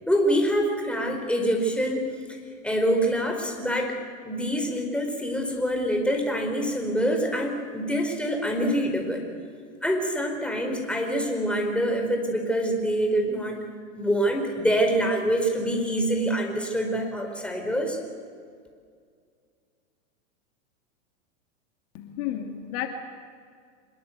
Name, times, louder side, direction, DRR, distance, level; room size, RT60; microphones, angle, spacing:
voice 1, 0.1-2.1 2.6-4.0 4.2-9.2 9.8-13.6 13.9-18.0, equal, 5° left, 3 dB, 4.9 m, -25 dB
voice 2, 21.9-22.9, left 11 dB, 55° left, 5 dB, 2.7 m, -32 dB
25.5 x 21.5 x 8.2 m, 2.1 s
hypercardioid pair, 110°, 39 cm